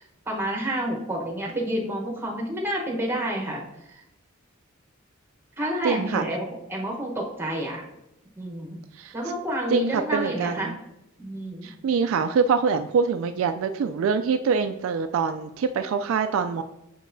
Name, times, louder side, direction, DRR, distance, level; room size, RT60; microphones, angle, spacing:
voice 1, 0.0-3.6 3.9-4.0 5.6-7.8 8.4-8.8 9.1-10.7 11.2-11.7, right 1 dB, 10° right, -1 dB, 1.0 m, -29 dB
voice 2, 5.8-6.2 9.0-9.1 9.7-10.8 11.6-16.6, right 5 dB, 65° right, 8 dB, 0.3 m, -24 dB
6.5 x 5.9 x 2.6 m, 0.87 s
head